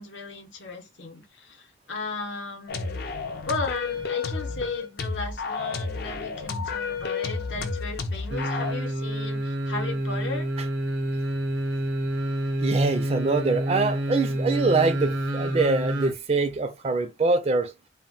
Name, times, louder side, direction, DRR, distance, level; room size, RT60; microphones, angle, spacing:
voice 1, 0.0-3.0 3.4-10.5, left 3 dB, 75° left, 0.8 m, -35 dB
sound 1, 2.7-8.7, left 4 dB, 55° left, 0.4 m, -31 dB
sound 2, 8.3-16.1 16.5-16.6, equal, 85° right, 0.7 m, -28 dB
voice 2, 12.6-17.7, right 3 dB, 30° right, 0.3 m, -24 dB
2.1 x 2.1 x 3.8 m
head